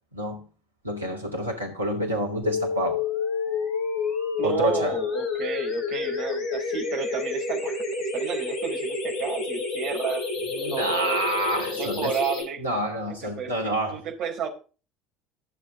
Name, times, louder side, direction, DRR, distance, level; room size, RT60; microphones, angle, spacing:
voice 1, 0.1-0.4 0.8-3.0 4.4-5.0 10.5-12.2 12.6-14.0, right 1 dB, 90° right, 2.9 m, -28 dB
sound 1, 2.4-12.4, left 4 dB, 40° left, 7.2 m, -29 dB
voice 2, 4.4-10.2 10.7-11.2 11.7-12.6 13.2-14.5, right 7 dB, 50° right, 4.4 m, -32 dB
15.0 x 7.5 x 3.8 m
figure-of-eight pair, 65°, 0 cm